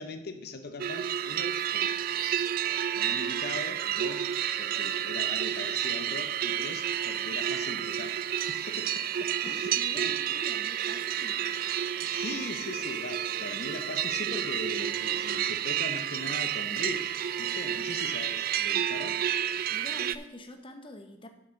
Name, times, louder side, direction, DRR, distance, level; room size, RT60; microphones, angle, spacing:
voice 1, 0.0-1.9 2.9-4.3 4.6-8.2 8.5-10.1 12.0-19.2, left 3 dB, 60° left, 7 dB, 0.7 m, -40 dB
sound 1, 0.8-20.2, right 10 dB, 55° right, 0.3 m, -30 dB
voice 2, 9.4-11.4 19.7-21.3, left 1 dB, 30° left, 6 dB, 0.9 m, -46 dB
6.5 x 5.6 x 6.9 m, 0.90 s
head